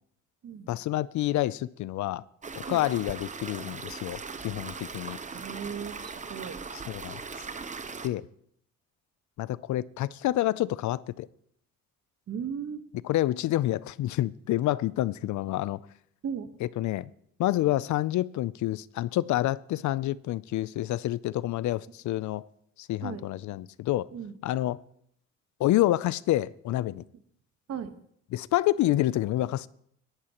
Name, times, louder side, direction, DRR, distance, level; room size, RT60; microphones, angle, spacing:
voice 1, 0.7-2.2 2.7-5.2 6.7-7.2 8.0-8.3 9.4-11.3 13.0-15.8 16.6-17.1 17.4-22.4 22.8-24.1 24.4-24.8 25.6-27.0 28.3-29.7, left 15 dB, 70° left, 20 dB, 0.5 m, -28 dB
sound 1, 2.4-8.1, right 5 dB, 25° right, 0.8 m, -39 dB
voice 2, 5.3-6.6 12.3-12.8 16.2-16.5 23.0-23.2 24.1-24.3 27.7-27.9, right 7 dB, 55° right, 9 dB, 1.3 m, -36 dB
20.0 x 11.5 x 3.0 m, 0.68 s
cardioid pair, 90°, 30 cm